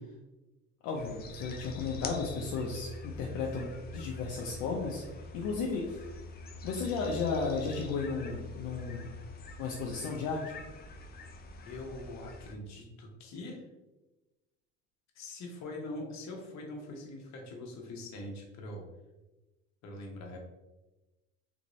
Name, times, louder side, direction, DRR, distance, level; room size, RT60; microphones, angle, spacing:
voice 1, 0.8-5.0 5.3-6.0 6.6-9.1 9.6-10.5, left 4 dB, 75° left, -1 dB, 0.7 m, -34 dB
sound 1, 0.9-12.5, left 3 dB, 30° left, 0.5 m, -45 dB
voice 2, 11.6-13.6 15.1-18.8 19.8-20.4, left 2 dB, 55° left, 1 dB, 1.0 m, -43 dB
3.5 x 2.5 x 3.1 m, 1.1 s
supercardioid pair, 90°, 32 cm